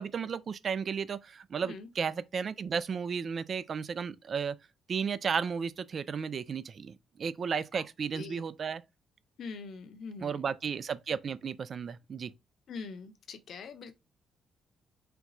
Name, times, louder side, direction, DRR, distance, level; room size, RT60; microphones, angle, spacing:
voice 1, 0.0-4.6 4.9-8.8 10.2-12.3, right 6 dB, 50° right, 0.5 m, -34 dB
voice 2, 8.1-8.4 9.4-10.4 12.7-13.9, left 5 dB, 65° left, 0.9 m, -43 dB
4.5 x 2.3 x 4.0 m
cardioid pair, 90°, 0 cm